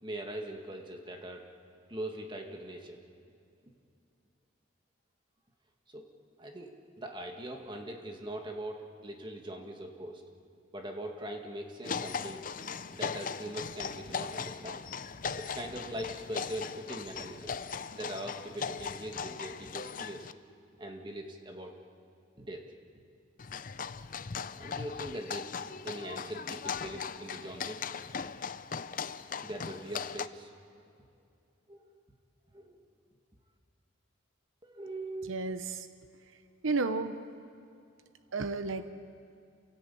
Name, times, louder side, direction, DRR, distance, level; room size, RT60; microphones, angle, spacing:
voice 1, 0.0-1.4 1.9-3.0 5.9-6.0 6.4-10.2 10.7-12.4 12.9-14.8 15.4-17.6 18.0-20.3 20.8-21.7 22.4-22.6 24.6-25.5 25.8-27.9 29.3-30.5 31.7-31.9 32.5-32.8 34.6-35.5, right 1 dB, 25° right, 3 dB, 1.8 m, -41 dB
sound 1, 11.8-20.3 23.4-30.3, left 6 dB, 45° left, 0.6 m, -39 dB
voice 2, 35.3-35.6 36.6-37.2 38.3-38.9, right 3 dB, 80° right, 10 dB, 0.9 m, -31 dB
28.5 x 17.0 x 8.5 m, 2.5 s
head